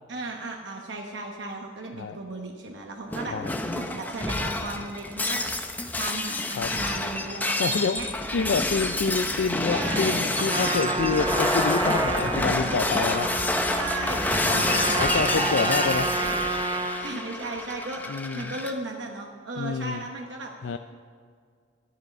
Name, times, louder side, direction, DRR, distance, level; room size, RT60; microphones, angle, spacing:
voice 1, 0.1-5.5 6.0-8.1 9.7-10.2 13.6-15.7 17.0-20.5, right 2 dB, 75° right, 1 dB, 1.0 m, -36 dB
Shatter, 3.1-18.7, left 1 dB, 10° left, 0.8 m, -28 dB
voice 2, 7.4-8.0 8.3-13.3 14.5-16.1 18.1-18.5 19.6-20.0 20.6-20.8, left 5 dB, 90° left, 8 dB, 0.4 m, -28 dB
Trumpet, 10.3-17.2, right 3 dB, 25° right, 0.6 m, -30 dB
12.5 x 10.5 x 5.3 m, 2.1 s
head